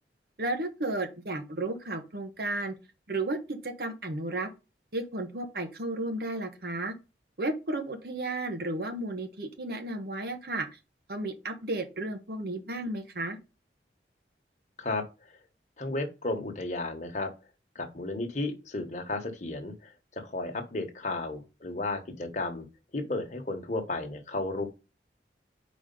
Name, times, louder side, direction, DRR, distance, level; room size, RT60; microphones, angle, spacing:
voice 1, 0.4-2.7 3.1-4.5 4.9-6.9 7.4-10.8 11.1-13.4, right 2 dB, 60° right, 1.1 m, -33 dB
voice 2, 15.8-17.3 17.7-22.7 22.9-24.7, left 2 dB, 45° left, 1.2 m, -33 dB
4.9 x 4.1 x 5.3 m
head